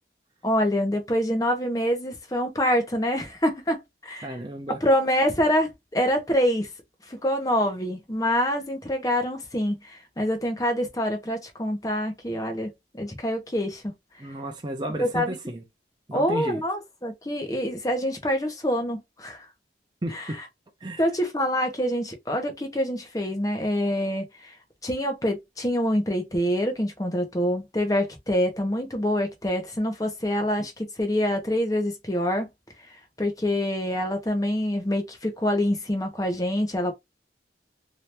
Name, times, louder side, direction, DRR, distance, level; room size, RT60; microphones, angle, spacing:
voice 1, 0.4-4.3 4.8-6.7 7.1-13.9 15.0-15.4 16.1-19.5 20.1-20.2 21.0-24.5 24.8-32.5 33.2-36.9, equal, 20° left, 0.8 m, -26 dB
voice 2, 4.2-4.8 14.2-15.6 16.1-16.6 20.0-20.4 20.8-21.0 30.6-30.7, right 1 dB, 25° right, 0.6 m, -33 dB
2.9 x 2.6 x 3.3 m
head